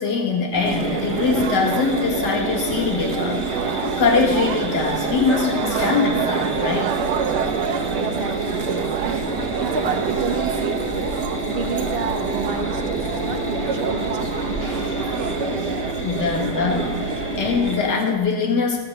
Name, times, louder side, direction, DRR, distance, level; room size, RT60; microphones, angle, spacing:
voice 1, 0.0-6.9 16.0-18.8, left 5 dB, 65° left, 1 dB, 2.3 m, -23 dB
sound 1, 0.5-17.8, left 1 dB, 10° left, 0.9 m, -30 dB
sound 2, 0.6-18.2, right 8 dB, 70° right, 1.3 m, -27 dB
voice 2, 7.9-11.2 11.5-15.1, right 5 dB, 40° right, 5 dB, 0.9 m, -30 dB
sound 3, 9.0-17.1, right 1 dB, 10° right, 2.1 m, -35 dB
16.0 x 6.7 x 6.5 m, 1.3 s
omnidirectional pair, 2.0 m